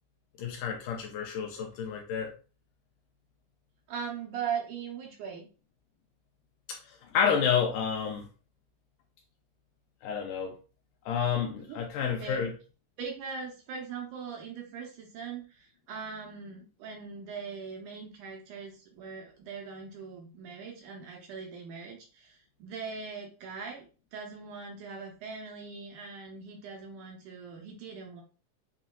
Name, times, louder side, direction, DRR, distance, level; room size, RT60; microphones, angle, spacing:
voice 1, 0.4-2.3 6.7-8.3 10.0-10.6 11.1-12.5, left 7 dB, 80° left, 2.0 m, -30 dB
voice 2, 3.9-5.5 11.7-12.4 13.0-28.2, right 6 dB, 75° right, 2.0 m, -40 dB
7.3 x 2.8 x 2.3 m
omnidirectional pair, 4.1 m